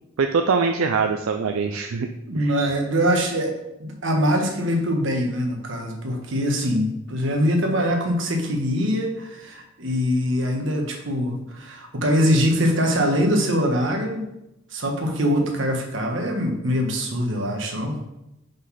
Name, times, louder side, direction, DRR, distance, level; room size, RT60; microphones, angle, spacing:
voice 1, 0.2-2.1 2.3-2.5, right 5 dB, 85° right, 6 dB, 0.4 m, -23 dB
voice 2, 2.3-3.5 3.8-14.2 14.7-18.0, equal, 65° right, 2 dB, 1.2 m, -23 dB
5.2 x 4.0 x 5.7 m, 0.88 s
head